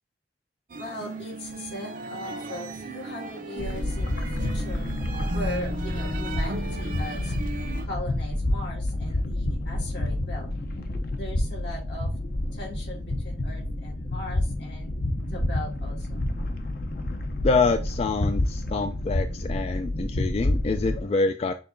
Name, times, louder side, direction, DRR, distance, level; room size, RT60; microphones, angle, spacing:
sound 1, 0.7-7.9, right 2 dB, 45° right, 0.6 m, -36 dB
voice 1, 0.8-4.9 5.3-7.3 7.8-10.5 11.1-12.1 12.5-14.9 15.3-16.2, left 1 dB, 75° left, -2 dB, 2.2 m, -39 dB
sound 2, 3.6-21.0, left 1 dB, 55° left, 0.7 m, -29 dB
voice 2, 17.4-21.5, left 3 dB, 35° left, 8 dB, 0.3 m, -26 dB
6.5 x 2.8 x 2.5 m, 0.35 s
head